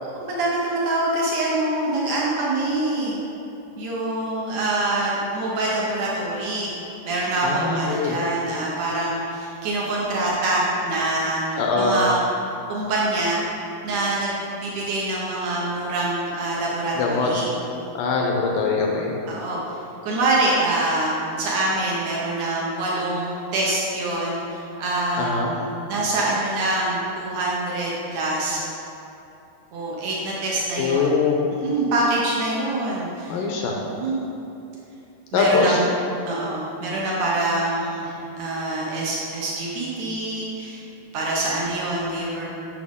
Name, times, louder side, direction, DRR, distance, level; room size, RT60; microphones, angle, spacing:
voice 1, 0.0-3.2 3.8-6.7 7.0-12.2 12.7-13.4 13.8-17.5 19.2-19.6 20.0-28.6 29.7-31.2 31.6-33.4 33.9-34.3 35.3-35.9 36.3-40.8 41.1-42.4, right 2 dB, 85° right, -4 dB, 1.5 m, -25 dB
voice 2, 7.4-8.2 11.6-12.1 17.0-17.3 17.9-19.1 25.2-25.5 30.8-31.4 33.3-33.8 35.3-35.8, left 4 dB, 85° left, -1 dB, 1.9 m, -22 dB
8.4 x 6.1 x 3.6 m, 2.9 s
omnidirectional pair, 4.5 m